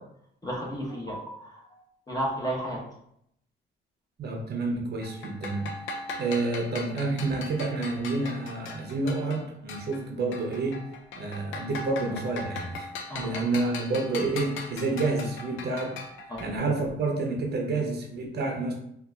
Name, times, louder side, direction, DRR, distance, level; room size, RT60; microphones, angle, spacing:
voice 1, 0.4-1.5 2.1-2.8 13.1-13.3 16.3-16.4, right 1 dB, 20° left, -4 dB, 1.1 m, -32 dB
voice 2, 4.2-5.7 6.2-10.8 11.2-12.9 13.1-15.9 16.4-18.7, right 3 dB, 55° right, 1 dB, 0.8 m, -29 dB
sound 1, 5.0-10.1 10.3-16.5, left 3 dB, 75° left, 0.5 m, -40 dB
3.8 x 2.6 x 2.4 m, 0.73 s
cardioid pair, 90°, 20 cm